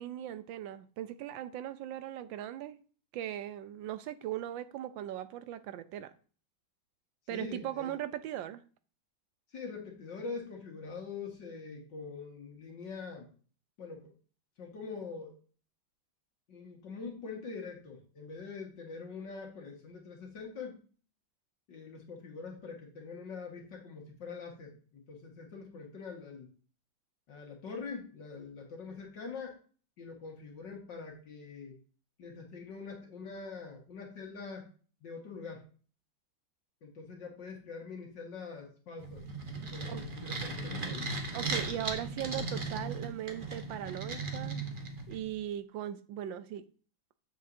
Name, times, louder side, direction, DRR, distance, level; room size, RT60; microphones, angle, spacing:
voice 1, 0.0-2.8 3.1-6.1 7.3-8.6 39.9-40.1 41.3-44.6 45.1-46.6, right 11 dB, 80° right, 1.3 m, -39 dB
voice 2, 7.3-7.9 9.5-13.3 13.8-14.2 14.6-15.4 16.5-20.8 21.7-26.5 27.3-29.6 30.0-31.8 32.2-34.7 35.0-35.6 36.8-39.2 39.7-41.0, left 4 dB, 65° left, 2.3 m, -44 dB
sound 1, 39.0-45.3, right 3 dB, 30° right, 1.1 m, -37 dB
8.6 x 7.2 x 2.7 m
omnidirectional pair, 2.1 m